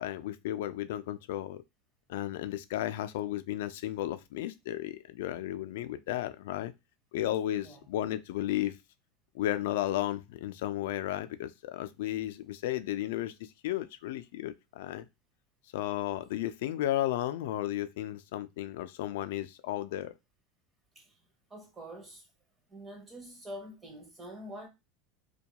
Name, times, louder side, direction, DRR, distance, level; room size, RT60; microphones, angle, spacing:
voice 1, 0.0-1.6 2.1-6.7 7.1-8.7 9.3-13.3 13.6-15.1 15.7-20.1, left 13 dB, 75° left, 0.3 m, -34 dB
voice 2, 21.5-22.2 22.7-24.7, equal, 15° right, 0.7 m, -45 dB
2.2 x 2.2 x 2.8 m
supercardioid pair, 150°, 0 cm